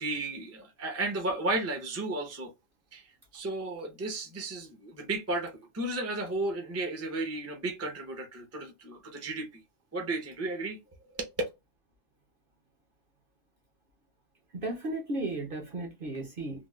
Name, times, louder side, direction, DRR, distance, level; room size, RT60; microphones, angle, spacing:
voice 1, 0.0-2.5 2.9-9.6 9.9-10.8 11.1-11.3, right 2 dB, 15° right, 0.5 m, -34 dB
voice 2, 14.5-16.7, right 2 dB, 45° right, 0.9 m, -35 dB
3.7 x 2.3 x 2.3 m
omnidirectional pair, 1.5 m